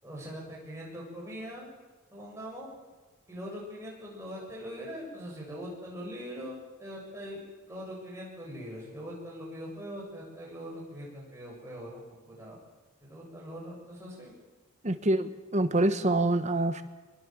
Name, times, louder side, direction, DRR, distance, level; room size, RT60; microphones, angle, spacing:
voice 1, 0.0-1.7 2.1-2.7 3.3-7.4 7.7-12.6 13.0-14.3, equal, 15° right, -3 dB, 7.4 m, -42 dB
voice 2, 14.8-16.8, right 2 dB, 30° right, 10 dB, 1.3 m, -26 dB
24.0 x 22.0 x 7.5 m, 1.2 s
head